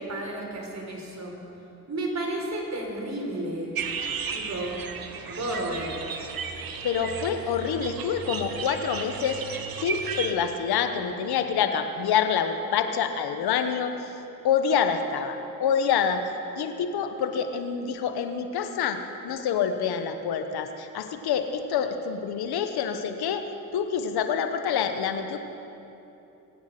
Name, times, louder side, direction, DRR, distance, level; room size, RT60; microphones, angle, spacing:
voice 1, 0.0-1.4 1.9-3.8 4.3-4.8 5.3-6.0, right 1 dB, 45° right, 0 dB, 4.3 m, -32 dB
sound 1, 3.7-10.3, right 5 dB, 65° right, 1.3 m, -34 dB
voice 2, 6.8-14.1 14.4-16.2 16.6-19.0 19.2-23.4 23.7-25.4, left 7 dB, 90° left, 7 dB, 1.1 m, -27 dB
23.0 x 9.7 x 5.9 m, 2.9 s
supercardioid pair, 50°, 37 cm